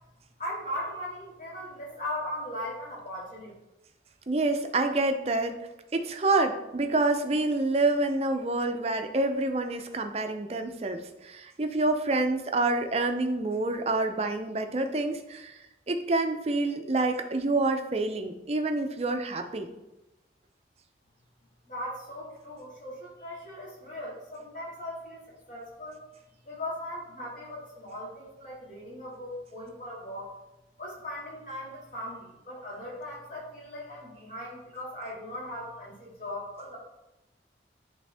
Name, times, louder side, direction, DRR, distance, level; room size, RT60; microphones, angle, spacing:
voice 1, 0.4-3.5 21.7-25.2 25.5-26.0 26.5-30.3 30.8-36.8, left 1 dB, 45° left, -5 dB, 2.0 m, -38 dB
voice 2, 4.3-5.6 5.9-15.6 15.9-19.7, right 2 dB, 35° right, 6 dB, 0.5 m, -27 dB
9.0 x 3.4 x 3.4 m, 0.96 s
head